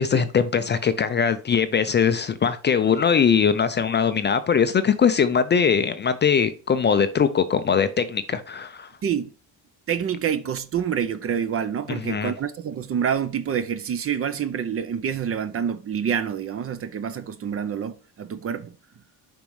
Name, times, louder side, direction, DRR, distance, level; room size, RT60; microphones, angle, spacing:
voice 1, 0.0-8.9 11.9-12.3, left 6 dB, 30° left, 0.4 m, -21 dB
voice 2, 9.9-18.7, right 8 dB, 35° right, 0.5 m, -27 dB
6.9 x 5.2 x 3.1 m
cardioid pair, 145°, 40 cm